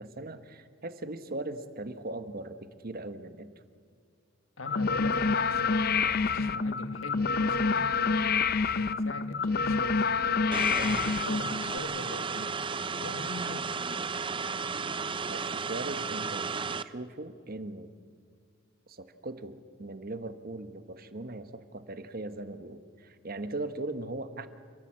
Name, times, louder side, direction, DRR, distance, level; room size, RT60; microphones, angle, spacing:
voice 1, 0.0-3.5 15.3-17.9 18.9-24.5, right 2 dB, 50° right, 11 dB, 1.2 m, -39 dB
voice 2, 4.6-7.8 8.7-10.0 10.4-12.5 12.9-13.8, left 2 dB, 85° left, 9 dB, 1.6 m, -41 dB
sound 1, 4.7-11.8, left 4 dB, 50° left, 0.6 m, -27 dB
sound 2, 10.5-16.8, right 5 dB, 25° right, 0.6 m, -33 dB
30.0 x 14.0 x 7.5 m, 2.3 s
head